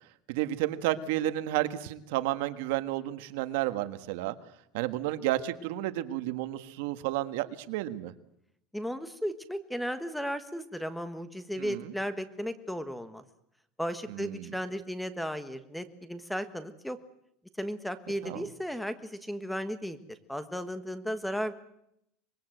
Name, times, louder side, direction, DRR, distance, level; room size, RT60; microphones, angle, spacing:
voice 1, 0.3-4.4 4.7-8.1 11.6-11.9 14.1-14.5 18.2-18.5, right 14 dB, 75° right, 10 dB, 1.6 m, -31 dB
voice 2, 8.7-13.2 13.8-17.0 17.6-21.5, equal, ahead, 11 dB, 1.4 m, -35 dB
24.5 x 22.0 x 8.0 m, 0.78 s
supercardioid pair, 155°, 0 cm